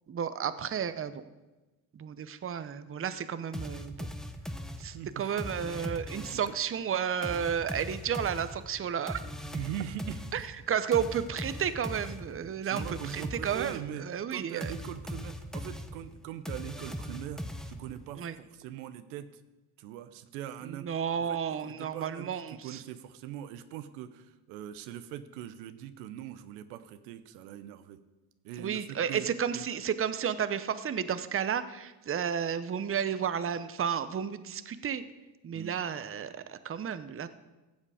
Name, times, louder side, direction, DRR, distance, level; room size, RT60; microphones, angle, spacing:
voice 1, 0.1-1.2 1.9-4.1 4.8-9.2 10.3-14.7 18.2-18.3 20.6-22.8 28.6-35.0 35.4-37.3, right 8 dB, 25° right, 13 dB, 0.8 m, -32 dB
sound 1, 3.5-6.6 7.2-14.0 14.6-18.1, equal, ahead, 1.0 m, -40 dB
voice 2, 4.9-5.5 6.3-6.5 9.5-10.5 12.6-14.0 14.3-19.4 19.8-21.0 21.3-21.4 21.7-28.0 28.4-29.3 29.5-29.7 35.5-35.7, right 11 dB, 85° right, 11 dB, 0.9 m, -41 dB
16.0 x 7.4 x 4.9 m, 1.1 s
supercardioid pair, 70°, 49 cm